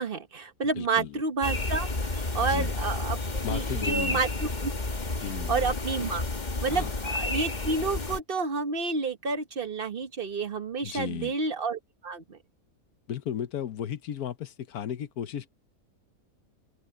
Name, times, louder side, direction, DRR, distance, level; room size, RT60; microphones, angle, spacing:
voice 1, 0.0-1.9 2.3-4.7 5.5-6.2 6.6-12.4, right 4 dB, 40° right, 1.3 m, -30 dB
voice 2, 0.7-1.2 2.4-2.7 3.4-4.2 5.2-5.6 6.7-6.9 10.8-11.3 13.1-15.5, left 9 dB, 80° left, 1.4 m, -35 dB
sound 1, 1.4-8.2, left 2 dB, 30° left, 1.6 m, -31 dB
open air
omnidirectional pair, 1.5 m